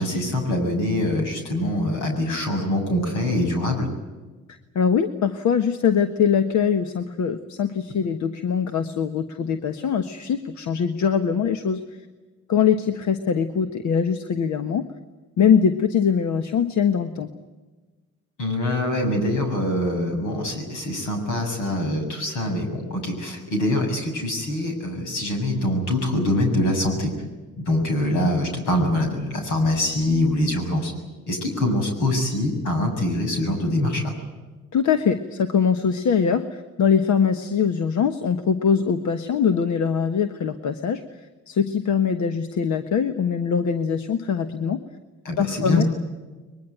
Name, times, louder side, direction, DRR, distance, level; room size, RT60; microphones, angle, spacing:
voice 1, 0.0-3.9 18.4-27.1 27.6-30.9 31.3-34.1 45.2-45.9, left 1 dB, 85° left, 4 dB, 7.3 m, -24 dB
voice 2, 4.7-11.8 12.5-14.9 15.4-17.3 34.7-41.0 41.5-44.8 45.4-45.8, left 7 dB, 70° left, 8 dB, 1.4 m, -22 dB
22.5 x 21.5 x 9.3 m, 1.2 s
cardioid pair, 90°, 30 cm